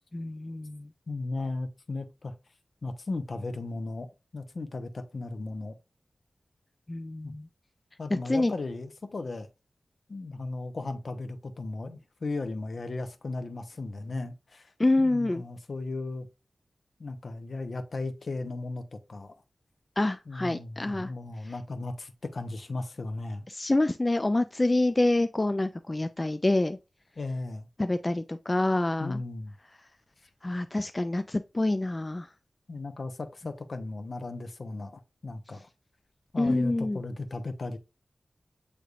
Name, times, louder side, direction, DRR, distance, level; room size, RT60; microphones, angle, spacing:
voice 1, 0.1-0.9 6.9-7.5 8.3-8.5 14.8-15.4 20.0-21.1 23.5-26.8 27.8-29.2 30.4-32.3 36.4-37.0, left 2 dB, 30° left, 0.3 m, -27 dB
voice 2, 1.1-2.3 2.8-5.8 7.2-7.3 8.0-9.5 10.1-14.7 15.0-16.3 17.0-19.3 20.3-23.4 27.2-27.7 29.0-29.5 32.7-35.7 36.3-37.8, left 3 dB, 65° left, 0.7 m, -36 dB
6.6 x 3.3 x 2.4 m
cardioid pair, 45°, 0 cm